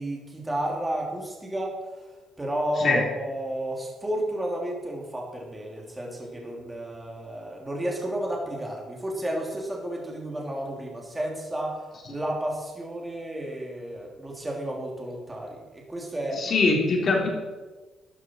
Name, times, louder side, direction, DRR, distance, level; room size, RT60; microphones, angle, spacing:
voice 1, 0.0-2.1 2.4-16.4, right 1 dB, 15° right, -1 dB, 3.2 m, -32 dB
voice 2, 16.3-17.3, left 3 dB, 50° left, -1 dB, 3.6 m, -22 dB
13.0 x 11.5 x 4.7 m, 1.3 s
cardioid pair, 90°, 0 cm